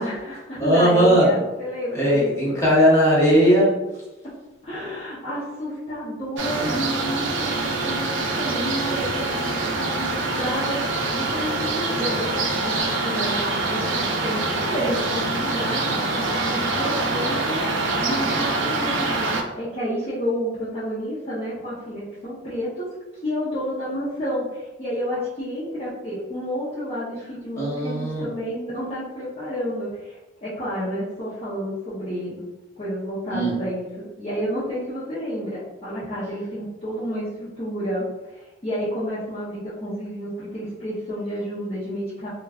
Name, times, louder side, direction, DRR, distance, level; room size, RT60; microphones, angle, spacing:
voice 1, 0.0-2.6 4.6-19.3 19.6-22.8 23.2-32.4 32.8-42.3, equal, 30° left, -11 dB, 0.7 m, -30 dB
voice 2, 0.6-1.3 1.9-3.7 27.6-28.3 33.3-33.6, equal, 15° left, -8 dB, 1.1 m, -18 dB
sound 1, 6.4-19.4, right 2 dB, 75° right, 0.5 m, -25 dB
3.3 x 2.3 x 2.3 m, 1.1 s
head